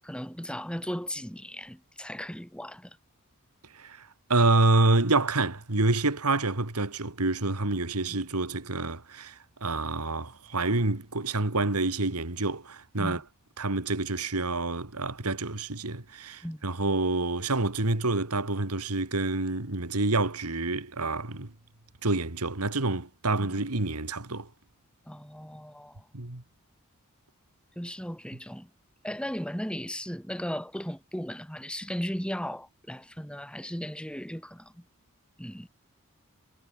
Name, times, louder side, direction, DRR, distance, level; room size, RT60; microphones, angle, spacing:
voice 1, 0.0-3.0 8.0-8.2 13.0-13.2 16.4-16.7 23.4-23.5 25.1-26.1 27.8-28.7 29.0-34.8 35.4-35.7, equal, 5° left, 5.9 m, -36 dB
voice 2, 4.3-13.2 13.6-21.5 22.0-24.5 26.1-26.4, right 2 dB, 90° right, 2.4 m, -27 dB
head